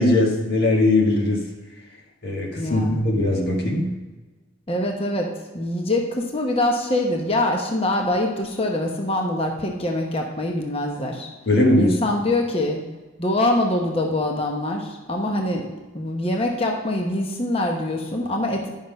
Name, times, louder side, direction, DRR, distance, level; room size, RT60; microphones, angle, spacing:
voice 1, 0.0-1.4 2.2-3.9 11.5-12.0, left 1 dB, 50° left, -1 dB, 1.5 m, -20 dB
voice 2, 2.6-3.0 4.7-11.3 11.8-12.8 13.2-15.7 15.9-18.7, left 1 dB, 25° left, 1 dB, 0.9 m, -24 dB
11.0 x 5.7 x 5.2 m, 1.2 s
head